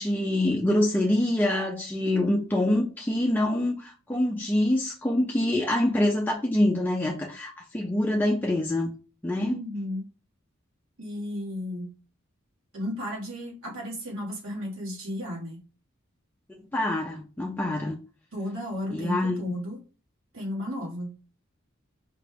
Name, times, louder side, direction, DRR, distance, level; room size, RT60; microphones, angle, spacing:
voice 1, 0.0-8.9 9.2-9.6 16.7-18.0 18.9-19.6, left 1 dB, 10° left, 0.4 m, -25 dB
voice 2, 9.4-10.0 11.0-11.9 12.7-15.6 18.3-19.8 20.3-21.1, left 1 dB, 90° right, 1.6 m, -34 dB
5.0 x 2.3 x 3.3 m
head